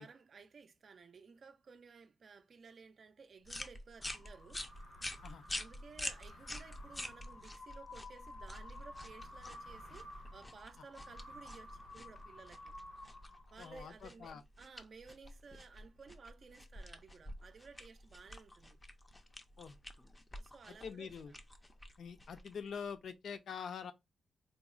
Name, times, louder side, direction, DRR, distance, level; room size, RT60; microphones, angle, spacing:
voice 1, 0.0-4.7 5.5-12.8 13.5-18.8 20.4-21.4, right 5 dB, 50° right, 0.4 m, -56 dB
sound 1, 3.4-23.0, left 1 dB, 15° left, 0.4 m, -48 dB
sound 2, 4.0-13.7, left 2 dB, 85° left, 1.2 m, -54 dB
voice 2, 13.6-14.4 19.6-19.8 20.7-21.3 22.0-23.9, left 6 dB, 65° left, 0.5 m, -45 dB
3.9 x 2.0 x 2.4 m
cardioid pair, 115°, 0 cm